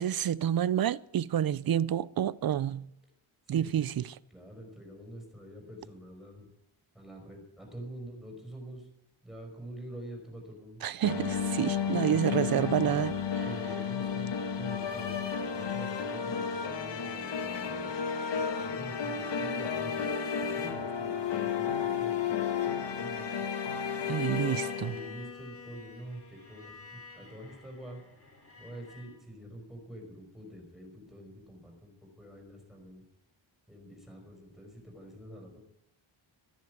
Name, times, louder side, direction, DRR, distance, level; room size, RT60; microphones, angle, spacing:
voice 1, 0.0-2.9 3.5-4.1 10.8-13.1 13.4-13.5 24.1-24.9, right 10 dB, 50° right, 0.5 m, -29 dB
voice 2, 3.5-3.9 4.3-6.5 6.9-8.9 9.2-10.8 11.9-13.0 13.4-18.0 18.6-20.0 20.4-23.3 24.9-26.8 27.1-28.0 28.6-31.9 32.2-33.0 33.7-35.6, right 1 dB, ahead, 5.1 m, -46 dB
sound 1, 11.0-25.2, left 7 dB, 60° left, 1.7 m, -32 dB
Bowed string instrument, 24.3-29.2, left 5 dB, 25° left, 3.8 m, -50 dB
14.0 x 10.5 x 9.5 m
wide cardioid pair, 145°, 49 cm